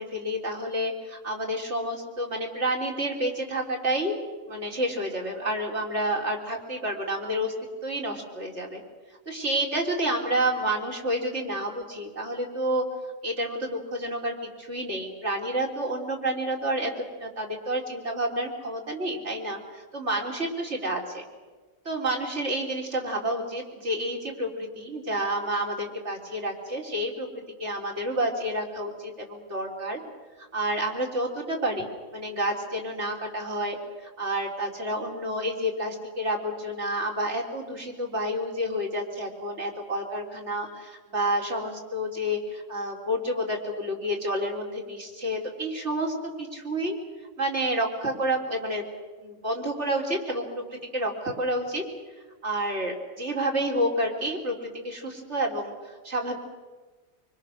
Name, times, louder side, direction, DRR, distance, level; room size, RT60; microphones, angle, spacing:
voice 1, 0.0-4.2 4.5-7.5 7.8-8.8 9.3-12.9 13.2-21.2 21.9-27.3 27.6-30.0 30.4-47.0 47.4-48.9 49.2-51.8 52.4-56.4, right 1 dB, 60° right, -1 dB, 4.0 m, -29 dB
25.5 x 24.5 x 6.6 m, 1.3 s
omnidirectional pair, 1.3 m